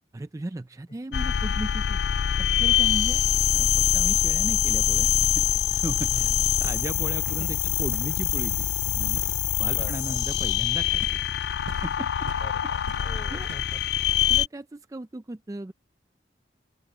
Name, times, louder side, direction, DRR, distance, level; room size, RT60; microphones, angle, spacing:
voice 1, 0.1-2.0 2.4-3.2 3.5-6.3 6.6-9.2 9.6-11.2 11.7-12.3 12.6-12.7 13.3-13.5 14.3-15.7, right 2 dB, 20° right, 0.4 m, -36 dB
sound 1, 1.1-14.5, left 11 dB, 60° left, 0.3 m, -24 dB
sound 2, 5.4-8.8 9.0-9.4 9.7-10.0 10.3-12.5 12.7-13.6, right 5 dB, 80° right, 0.5 m, -46 dB
voice 2, 6.1-6.5 7.4-7.7 9.6-10.2 12.3-13.8, left 1 dB, 30° left, 5.1 m, -43 dB
open air
head